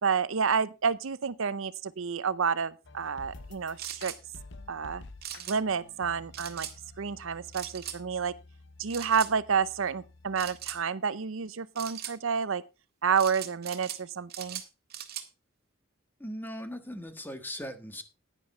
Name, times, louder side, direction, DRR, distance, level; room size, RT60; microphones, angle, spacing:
voice 1, 0.0-4.1 4.7-5.0 5.5-6.7 7.0-8.3 8.8-12.6 13.0-14.6, right 6 dB, 70° right, 0.6 m, -29 dB
sound 1, 2.8-10.8, left 2 dB, 60° left, 1.0 m, -51 dB
sound 2, 3.8-4.2 5.2-5.6 6.3-6.7 7.5-8.0 8.9-9.3 10.3-10.8 11.7-12.1 13.2-14.0 14.3-15.3, right 11 dB, 50° right, 1.8 m, -40 dB
voice 2, 16.2-18.0, equal, 10° left, 1.4 m, -39 dB
10.5 x 10.0 x 4.3 m
head